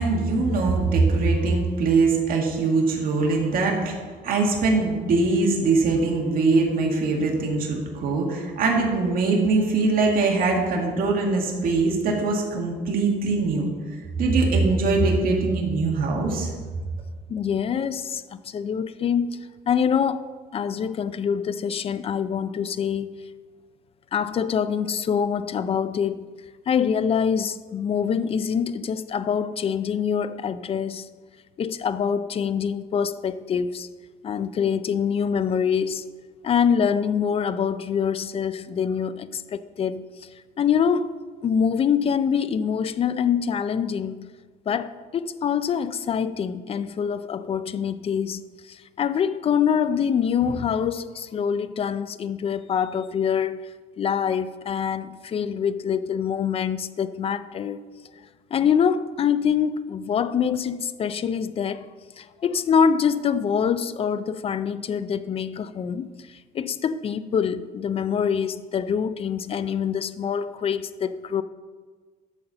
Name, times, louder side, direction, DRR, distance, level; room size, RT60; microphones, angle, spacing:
voice 1, 0.0-4.0 4.2-16.5, right 3 dB, 60° right, 1.9 m, -22 dB
voice 2, 17.3-19.4 19.7-20.3 20.5-23.2 24.1-26.3 26.7-31.1 31.6-33.9 34.2-36.1 36.4-40.3 40.6-41.1 41.4-44.3 44.7-53.6 54.0-57.9 58.5-61.9 62.2-71.4, left 7 dB, 35° left, 0.4 m, -25 dB
10.5 x 4.2 x 6.7 m
cardioid pair, 110°, 17 cm